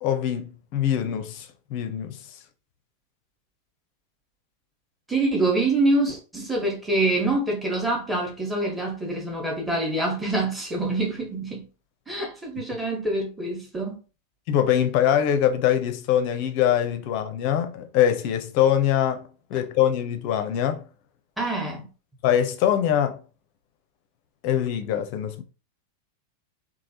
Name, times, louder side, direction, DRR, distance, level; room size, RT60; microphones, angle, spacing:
voice 1, 0.0-2.2 14.5-20.8 22.2-23.2 24.4-25.4, left 10 dB, 45° left, 0.5 m, -23 dB
voice 2, 5.1-11.7 12.1-14.0 21.4-21.9, right 2 dB, 5° right, 1.1 m, -25 dB
3.2 x 2.3 x 2.7 m
figure-of-eight pair, 90°, 0 cm